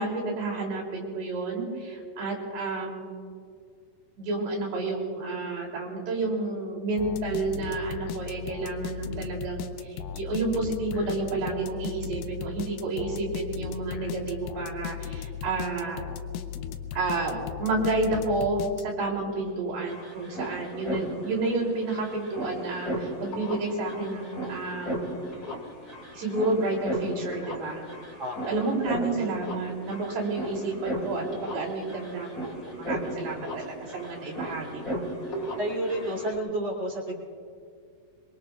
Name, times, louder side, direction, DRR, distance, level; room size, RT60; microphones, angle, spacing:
voice 1, 0.0-3.1 4.2-16.0 16.9-25.1 26.1-27.8 28.5-35.0, right 2 dB, 75° right, -2 dB, 5.0 m, -30 dB
sound 1, 7.0-19.2, left 8 dB, 85° left, 2.0 m, -37 dB
sound 2, 19.6-36.3, equal, 30° left, 1.6 m, -36 dB
voice 2, 28.2-28.7 29.0-29.1 35.6-37.2, right 1 dB, 30° right, -2 dB, 3.3 m, -31 dB
24.0 x 24.0 x 2.4 m, 2.2 s
omnidirectional pair, 4.7 m